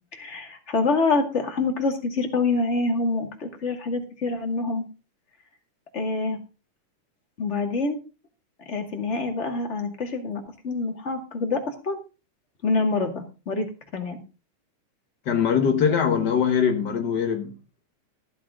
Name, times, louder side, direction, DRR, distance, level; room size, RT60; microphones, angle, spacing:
voice 1, 0.1-4.8 5.9-6.4 7.4-8.0 8.7-12.0 12.6-13.7 13.9-14.2, left 3 dB, 25° left, 2.0 m, -26 dB
voice 2, 15.2-17.6, left 7 dB, 65° left, 1.0 m, -22 dB
14.5 x 9.3 x 3.7 m
omnidirectional pair, 3.6 m